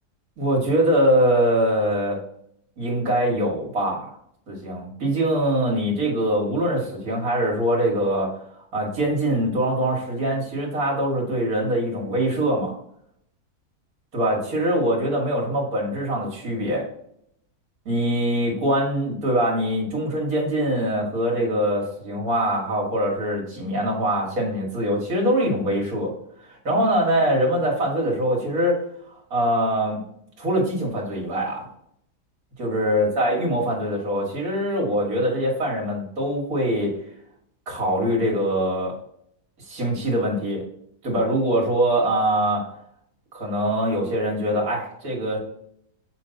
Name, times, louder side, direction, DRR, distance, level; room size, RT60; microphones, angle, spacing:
voice 1, 0.4-2.2 2.8-4.1 4.5-8.4 8.7-12.7 14.1-16.9 17.9-26.1 26.4-28.8 29.1-30.0 30.4-31.7 32.6-36.9 37.7-38.9 39.6-40.6 41.0-42.7 43.3-45.4, equal, 60° right, -1 dB, 2.2 m, -23 dB
7.4 x 3.2 x 4.0 m, 0.72 s
omnidirectional pair, 1.7 m